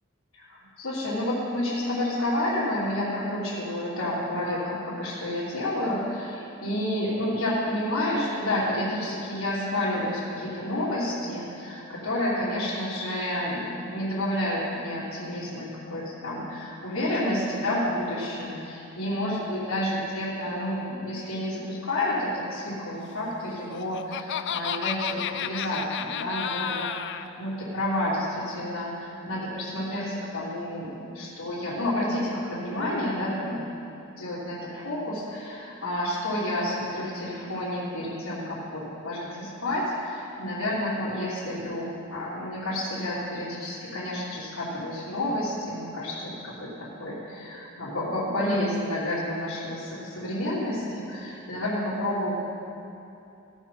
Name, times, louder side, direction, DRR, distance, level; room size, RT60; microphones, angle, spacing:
voice 1, 0.3-33.7 34.2-52.3, left 1 dB, 75° left, -13 dB, 3.2 m, -30 dB
Laughter, 23.5-27.3, left 9 dB, 60° left, 0.4 m, -32 dB
17.5 x 6.3 x 5.6 m, 2.8 s
head